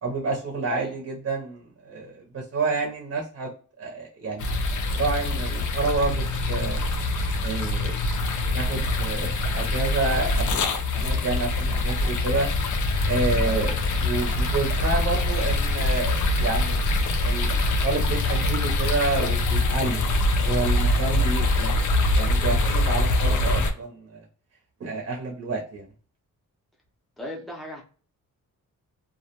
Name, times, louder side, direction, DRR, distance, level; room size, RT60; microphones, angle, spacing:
voice 1, 0.0-3.5 3.8-4.5 4.9-6.8 7.4-8.0 8.4-12.5 13.1-16.8 17.2-24.3 24.8-25.9, right 3 dB, 45° right, 0 dB, 0.6 m, -29 dB
sound 1, 4.4-23.7, left 2 dB, 60° left, 0.5 m, -24 dB
voice 2, 13.4-13.7 27.2-27.8, left 1 dB, ahead, -2 dB, 0.6 m, -36 dB
2.3 x 2.1 x 2.8 m, 0.39 s
wide cardioid pair, 160°, 33 cm